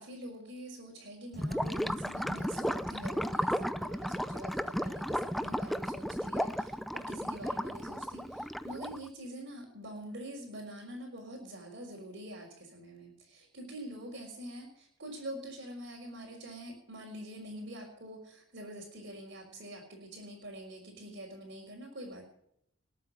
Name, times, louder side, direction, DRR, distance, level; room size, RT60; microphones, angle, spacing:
voice 1, 0.0-22.3, right 1 dB, 55° right, -5 dB, 4.4 m, -45 dB
Gurgling / Liquid, 1.3-9.1, equal, ahead, 0.5 m, -34 dB
20.5 x 8.4 x 6.2 m, 0.74 s
head